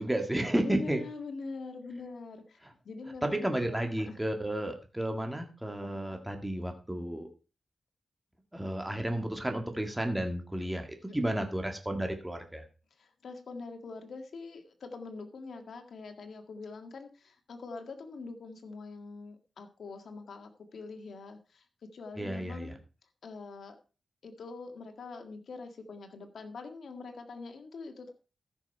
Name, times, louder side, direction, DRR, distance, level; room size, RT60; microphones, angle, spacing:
voice 1, 0.0-1.0 3.2-7.3 8.5-12.6 22.2-22.7, right 1 dB, 10° right, 4 dB, 1.7 m, -32 dB
voice 2, 0.6-3.8 4.1-4.2 5.7-6.0 13.0-22.8 23.2-23.8 24.2-28.1, left 4 dB, 80° left, 6 dB, 1.7 m, -44 dB
14.0 x 6.3 x 4.5 m, 0.35 s
wide cardioid pair, 120°, 0 cm